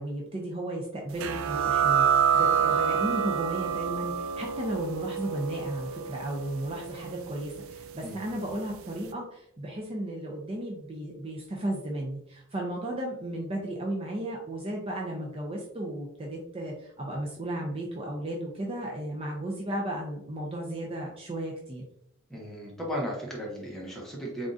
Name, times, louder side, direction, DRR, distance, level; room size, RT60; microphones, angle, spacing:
voice 1, 0.0-21.8, right 1 dB, 30° right, -1 dB, 0.5 m, -34 dB
sound 1, 1.2-8.4, right 7 dB, 85° right, 0.4 m, -28 dB
voice 2, 22.3-24.5, equal, ahead, -3 dB, 0.9 m, -35 dB
3.6 x 3.6 x 2.6 m, 0.74 s
head